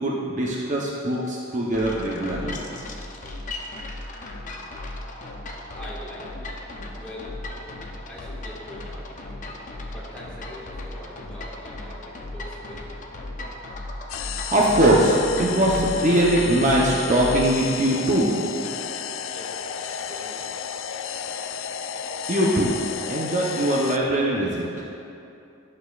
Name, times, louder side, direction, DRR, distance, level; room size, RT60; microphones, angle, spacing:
voice 1, 0.0-2.6 14.4-18.3 22.3-22.7 23.1-24.9, right 1 dB, 40° right, -4 dB, 0.7 m, -21 dB
sound 1, 1.7-17.6, left 1 dB, 40° left, 0.6 m, -36 dB
voice 2, 5.7-6.5 6.9-7.3 8.1-9.1 9.8-13.0 19.3-20.5, left 1 dB, 5° left, -7 dB, 1.5 m, -43 dB
sound 2, 14.1-24.0, left 8 dB, 80° left, 0.4 m, -33 dB
11.5 x 6.4 x 2.4 m, 2.7 s
head